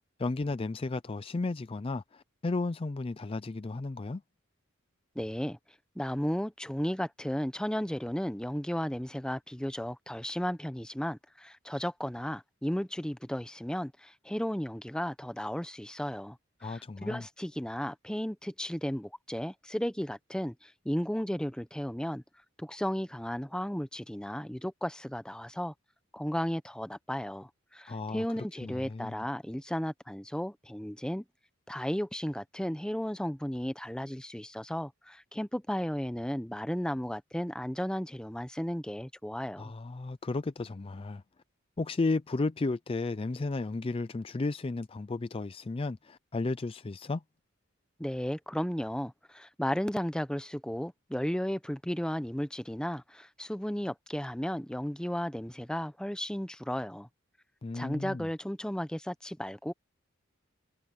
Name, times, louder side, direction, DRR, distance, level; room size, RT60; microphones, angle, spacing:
voice 1, 0.2-4.2 16.6-17.2 27.9-29.2 39.6-41.2 41.8-47.2 57.6-58.3, left 3 dB, 25° left, 0.4 m, -34 dB
voice 2, 5.1-5.6 6.0-22.2 22.6-25.7 26.1-31.2 31.7-39.7 48.0-57.1 57.7-59.7, equal, 5° left, 0.8 m, -34 dB
head